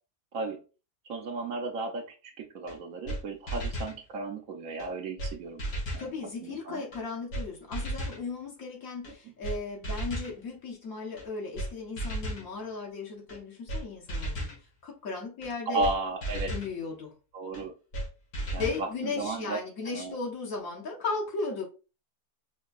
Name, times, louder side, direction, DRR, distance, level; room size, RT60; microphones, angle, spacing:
voice 1, 1.1-2.0 2.5-5.6 5.9-6.1 6.4-6.8 15.7-16.5 17.3-17.7 18.5-19.6 19.9-20.2, right 3 dB, 65° right, 1.0 m, -34 dB
sound 1, 2.7-2.8 3.1-3.2 3.5-4.0 4.8-4.9 5.2-5.3 5.6-6.1 6.9-7.0 7.3-7.4 7.7-8.2 9.0-9.1 9.4-9.6 9.8-10.3 11.2-11.3 11.6-11.7 12.0-12.5 13.3-13.4 13.7-13.8 14.1-14.6 15.4-15.5 15.8-15.9 16.2-16.7 17.5-17.6 17.9-18.1 18.3-18.8, right 1 dB, 85° left, 2.2 m, -34 dB
voice 2, 6.0-14.5 14.8-15.8 16.5-17.1 18.6-21.7, left 4 dB, 60° left, 1.5 m, -36 dB
5.2 x 2.8 x 2.4 m
omnidirectional pair, 1.7 m